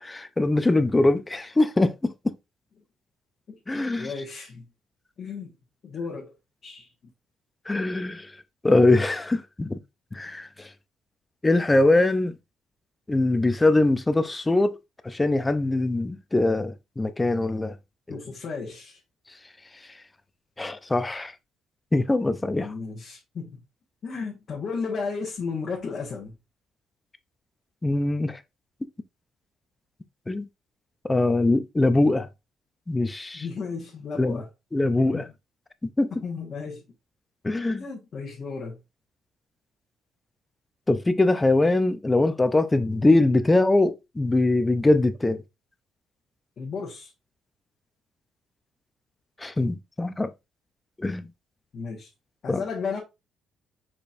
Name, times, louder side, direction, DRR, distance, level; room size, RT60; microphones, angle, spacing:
voice 1, 0.0-2.1 3.7-4.1 7.7-8.3 8.6-9.8 10.1-10.7 11.4-12.3 13.1-14.7 15.0-17.8 20.6-21.3 21.9-22.7 27.8-28.4 30.3-30.5 31.0-32.3 32.9-33.4 34.2-34.4 34.7-35.2 36.0-36.1 37.4-37.9 40.9-45.4 49.4-50.3 51.0-51.3 52.5-52.6, left 2 dB, 15° left, 0.5 m, -22 dB
voice 2, 3.7-4.6 5.2-5.5 5.8-6.3 6.6-6.9 18.1-19.0 22.6-23.6 24.0-26.3 33.3-34.5 35.0-35.2 36.2-36.8 37.7-38.8 46.6-47.1 51.7-52.1 52.4-53.0, left 5 dB, 40° left, 1.2 m, -34 dB
5.0 x 4.3 x 2.4 m
cardioid pair, 140°, 0 cm